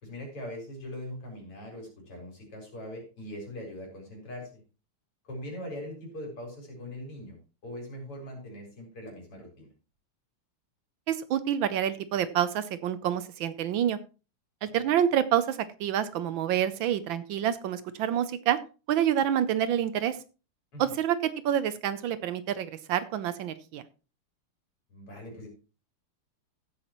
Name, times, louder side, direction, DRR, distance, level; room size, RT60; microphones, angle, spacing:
voice 1, 0.0-4.6 5.3-9.7 20.7-20.8 24.9-25.5, left 1 dB, 85° left, 0 dB, 5.2 m, -41 dB
voice 2, 11.1-14.0 14.6-18.6 18.9-20.2 20.8-23.8, right 10 dB, 70° right, 14 dB, 1.3 m, -27 dB
15.5 x 8.4 x 3.0 m, 0.33 s
omnidirectional pair, 2.4 m